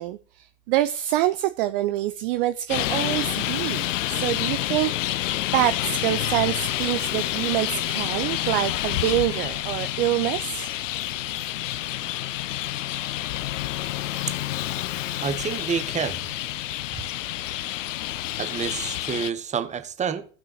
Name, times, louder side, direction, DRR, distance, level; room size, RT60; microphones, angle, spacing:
voice 1, 0.0-4.9 5.5-10.7, right 14 dB, 45° right, 0.5 m, -26 dB
Traffic noise roadway noise, 2.7-19.3, left 14 dB, 65° left, 0.6 m, -28 dB
voice 2, 15.2-16.2 16.9-17.0 18.4-20.3, right 7 dB, 15° right, 0.9 m, -28 dB
15.5 x 6.0 x 2.9 m
figure-of-eight pair, 85°, 40 cm